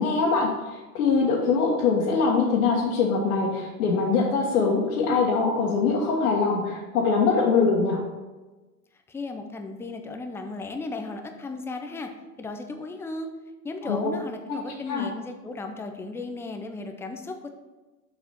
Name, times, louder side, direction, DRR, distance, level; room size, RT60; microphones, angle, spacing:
voice 1, 0.0-8.0 13.8-14.1 14.5-14.6 14.9-15.1, left 4 dB, 75° left, -5 dB, 1.7 m, -23 dB
voice 2, 9.1-12.1 12.4-13.3 13.6-17.5, left 3 dB, 5° left, 5 dB, 0.5 m, -35 dB
6.6 x 4.8 x 5.9 m, 1.2 s
hypercardioid pair, 105°, 46 cm